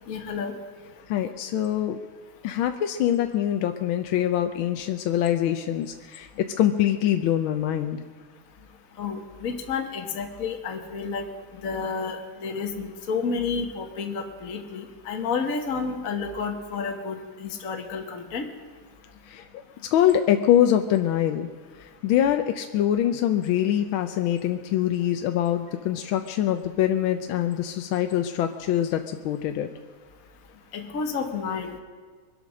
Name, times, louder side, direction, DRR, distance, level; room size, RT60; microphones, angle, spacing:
voice 1, 0.1-0.5 9.0-11.3 11.6-18.5 30.7-31.8, left 5 dB, 45° left, 3 dB, 1.4 m, -30 dB
voice 2, 1.1-2.0 2.4-8.0 19.3-19.4 19.9-21.5 22.0-29.7, left 11 dB, 75° left, 6 dB, 1.4 m, -24 dB
23.5 x 8.4 x 6.2 m, 1.5 s
omnidirectional pair, 2.4 m